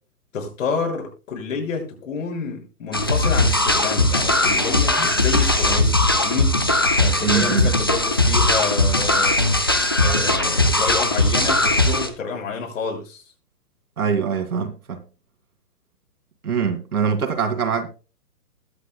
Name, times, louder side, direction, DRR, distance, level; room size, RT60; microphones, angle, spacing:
voice 1, 0.3-6.5 7.0-9.4 10.0-13.2, left 5 dB, 55° left, 6.4 m, -29 dB
sound 1, 2.9-12.1, left 2 dB, 15° left, 0.4 m, -19 dB
voice 2, 7.2-7.7 14.0-15.0 16.4-17.9, right 6 dB, 65° right, 2.2 m, -23 dB
20.5 x 8.2 x 2.2 m
figure-of-eight pair, 135°, 47 cm